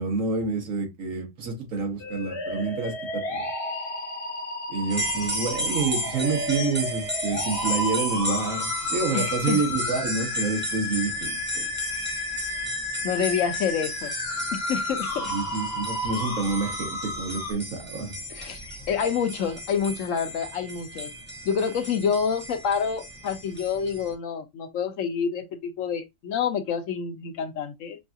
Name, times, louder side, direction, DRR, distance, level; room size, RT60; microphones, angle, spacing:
voice 1, 0.0-3.4 4.7-11.6 15.3-18.1, right 4 dB, 85° right, 1.6 m, -28 dB
sound 1, 2.0-17.5, left 2 dB, 55° left, 1.1 m, -32 dB
sound 2, 4.9-24.1, equal, 15° right, 0.4 m, -34 dB
voice 2, 9.1-9.6 13.0-14.1 14.7-15.3 18.3-21.1 21.4-28.0, left 7 dB, 75° left, 1.1 m, -28 dB
5.2 x 2.7 x 2.3 m
omnidirectional pair, 1.4 m